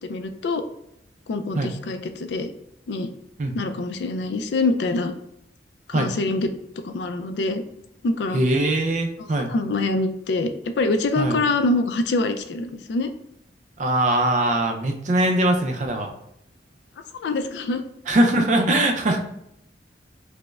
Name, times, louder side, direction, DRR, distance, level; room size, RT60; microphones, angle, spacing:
voice 1, 0.0-0.6 1.3-2.5 2.9-3.1 3.5-5.1 5.9-6.5 6.8-7.6 8.0-8.4 9.5-13.1 17.1-17.8, left 2 dB, 70° left, 8 dB, 0.3 m, -25 dB
voice 2, 8.3-9.5 11.2-11.4 13.8-16.1 18.1-19.2, right 1 dB, 45° right, 3 dB, 0.4 m, -21 dB
5.1 x 2.1 x 2.3 m, 0.78 s
head